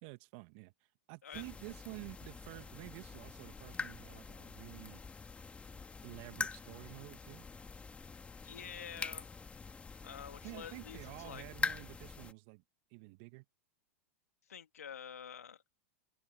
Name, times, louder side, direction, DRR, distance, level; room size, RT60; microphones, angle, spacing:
voice 1, 0.0-0.7 1.1-5.0 6.0-7.5 10.4-12.6 12.9-13.4, right 29 dB, 55° right, 1.8 m, -50 dB
sound 1, 1.3-12.3, left 4 dB, 15° left, 2.3 m, -44 dB
voice 2, 8.4-9.3 10.0-11.4 14.5-15.6, left 8 dB, 80° left, 2.5 m, -48 dB
hypercardioid pair, 100°, 8 cm